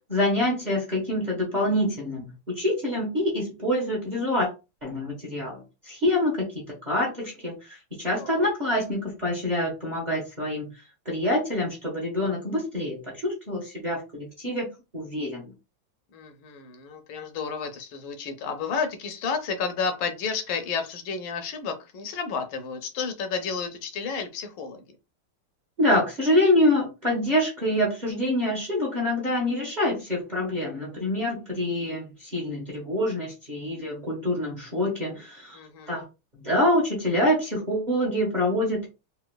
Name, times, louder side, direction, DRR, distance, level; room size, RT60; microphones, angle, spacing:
voice 1, 0.1-4.5 4.8-10.7 11.0-14.7 14.9-15.5 25.8-35.6 35.9-36.0 36.4-38.9, left 1 dB, 30° right, -2 dB, 0.9 m, -26 dB
voice 2, 8.2-8.5 16.1-24.8 35.5-36.0, left 5 dB, 80° left, 7 dB, 1.4 m, -31 dB
3.8 x 2.7 x 2.2 m, 0.27 s
omnidirectional pair, 2.3 m